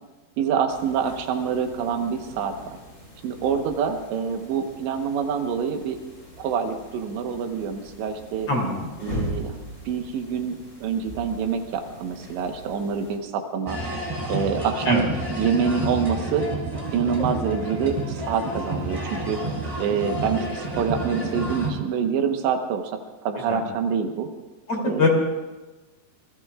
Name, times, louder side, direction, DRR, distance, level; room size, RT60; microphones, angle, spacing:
voice 1, 0.4-2.8 3.2-6.0 6.4-8.5 9.0-9.6 9.9-13.8 14.3-15.0 15.4-16.5 16.9-19.4 19.8-22.9 23.2-24.3 24.8-25.1, right 6 dB, 85° right, 5 dB, 3.4 m, -26 dB
sound 1, 0.7-13.2, equal, 15° left, 5.4 m, -40 dB
voice 2, 8.5-8.9 14.9-15.1 23.5-23.6 24.7-25.1, left 3 dB, 35° left, -1 dB, 3.6 m, -23 dB
sound 2, 13.7-21.7, right 1 dB, 10° right, 2.9 m, -30 dB
27.5 x 22.0 x 2.4 m, 1.2 s
omnidirectional pair, 4.9 m